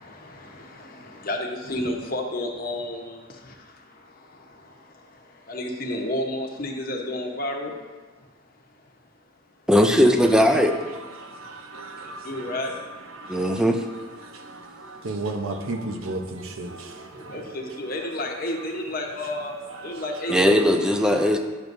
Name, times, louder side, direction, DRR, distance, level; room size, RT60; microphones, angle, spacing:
voice 1, 1.2-3.2 5.5-7.7 12.2-12.7 17.3-19.5 19.8-20.6, left 1 dB, 45° left, 1 dB, 0.9 m, -30 dB
voice 2, 9.7-10.8 13.3-13.8 20.3-21.4, equal, 5° right, 5 dB, 0.4 m, -18 dB
voice 3, 11.1-12.5 13.2-13.6 14.2-17.4 21.2-21.4, right 2 dB, 80° right, 4 dB, 0.8 m, -34 dB
10.5 x 6.4 x 2.6 m, 1.3 s
head